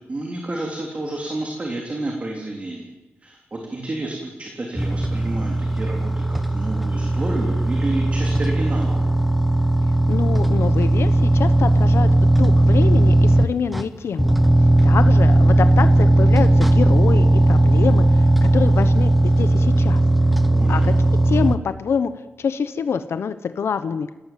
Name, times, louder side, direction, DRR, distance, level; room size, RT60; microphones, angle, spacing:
voice 1, 0.1-2.9 3.2-9.0 20.5-20.9, right 2 dB, 30° right, 1 dB, 3.4 m, -30 dB
sound 1, 4.8-13.8 14.2-21.6, right 1 dB, ahead, 0.9 m, -17 dB
voice 2, 10.1-14.3 14.8-20.0 20.7-20.9 21.2-22.1 22.4-24.1, left 6 dB, 70° left, 11 dB, 1.0 m, -25 dB
28.0 x 17.5 x 7.6 m, 1.1 s
wide cardioid pair, 150°, 5 cm